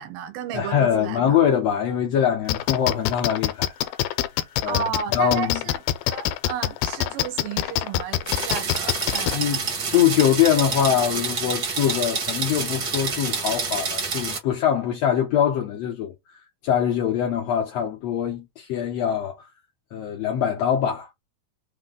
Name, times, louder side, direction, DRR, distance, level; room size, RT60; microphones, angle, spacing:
voice 1, 0.0-1.5 4.6-5.8 6.1-9.7, right 9 dB, 85° right, 2.6 m, -33 dB
voice 2, 0.5-3.7 4.6-4.8 5.1-5.6 9.3-16.4 16.6-19.4 19.9-21.1, left 9 dB, 75° left, 1.6 m, -23 dB
sound 1, 2.5-9.3, left 13 dB, 90° left, 2.4 m, -24 dB
sound 2, 8.3-14.4, right 5 dB, 60° right, 0.9 m, -28 dB
5.5 x 2.2 x 3.8 m
omnidirectional pair, 4.1 m